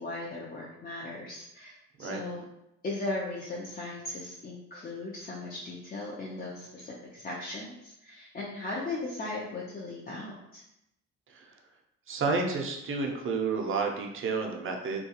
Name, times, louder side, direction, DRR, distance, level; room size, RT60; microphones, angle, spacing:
voice 1, 0.0-2.4 2.8-10.6, left 2 dB, 30° left, -4 dB, 0.5 m, -37 dB
voice 2, 12.1-15.0, right 4 dB, 45° right, 2 dB, 0.5 m, -30 dB
2.3 x 2.3 x 2.8 m, 0.84 s
cardioid pair, 90°, 30 cm